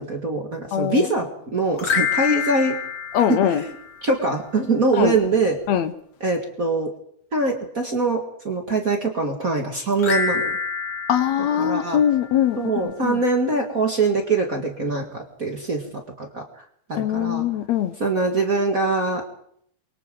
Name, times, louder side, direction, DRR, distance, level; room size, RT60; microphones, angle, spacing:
voice 1, 0.0-2.8 3.3-3.7 4.0-5.6 6.2-6.9 7.3-10.5 11.6-12.0 12.6-16.6 16.9-17.5 18.0-19.2, right 3 dB, 35° right, 1.5 m, -23 dB
voice 2, 0.7-1.1 3.1-3.6 5.0-5.2 5.7-5.9 11.1-12.6 12.8-13.2 16.9-17.9, left 10 dB, 75° left, 1.6 m, -21 dB
sound 1, 1.7-4.2 10.0-12.6, left 6 dB, 45° left, 2.7 m, -27 dB
28.5 x 24.0 x 3.8 m
omnidirectional pair, 4.2 m